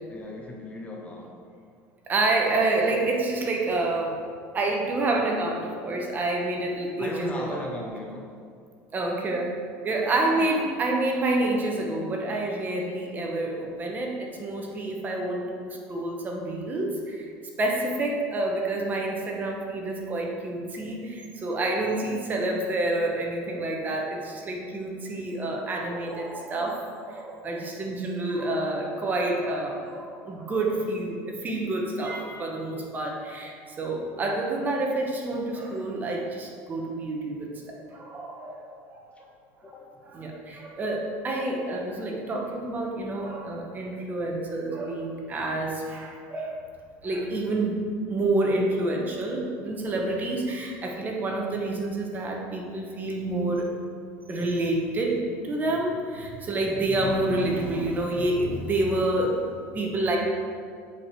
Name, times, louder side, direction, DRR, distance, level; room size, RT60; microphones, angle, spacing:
voice 1, 0.1-1.4 7.0-8.3 10.0-10.5 39.6-40.0, left 2 dB, 20° left, 0 dB, 0.7 m, -38 dB
voice 2, 2.1-4.2 4.5-7.6 8.9-17.3 17.6-37.5 37.9-39.3 40.1-46.6 47.0-53.7 54.3-60.2, right 2 dB, 25° right, 0 dB, 1.1 m, -28 dB
7.1 x 4.9 x 4.8 m, 2.2 s
cardioid pair, 140°, 7 cm